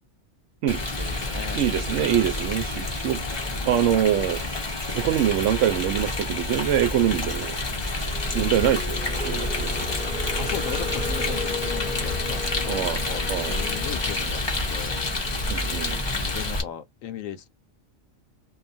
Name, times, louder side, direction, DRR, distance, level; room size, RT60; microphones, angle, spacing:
voice 1, 0.7-1.7 3.2-3.7 8.3-8.9 10.4-15.3 16.1-17.5, left 9 dB, 80° left, 1.0 m, -38 dB
Rain, 0.7-16.6, left 2 dB, 30° left, 0.6 m, -28 dB
Bowed string instrument, 1.0-7.3, right 3 dB, 5° right, 0.9 m, -46 dB
voice 2, 1.5-3.2 3.6-4.4 4.9-7.6 8.3-9.8 12.7-13.0 13.3-13.6 15.5-16.0, right 10 dB, 70° right, 0.9 m, -24 dB
sound 1, 7.7-16.7, left 2 dB, 40° right, 0.8 m, -36 dB
2.7 x 2.3 x 2.4 m
omnidirectional pair, 1.4 m